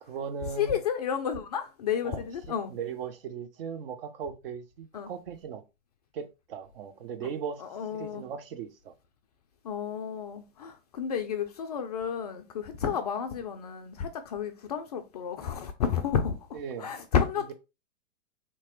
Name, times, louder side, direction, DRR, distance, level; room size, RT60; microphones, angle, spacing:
voice 1, 0.0-0.8 2.0-5.6 6.1-7.6 7.9-8.9 16.5-16.9 17.5-17.6, right 7 dB, 45° right, 0.6 m, -38 dB
voice 2, 0.6-2.7 4.9-5.1 7.6-8.2 9.6-17.5, left 7 dB, 35° left, 0.4 m, -31 dB
3.4 x 2.9 x 3.0 m
hypercardioid pair, 120°, 39 cm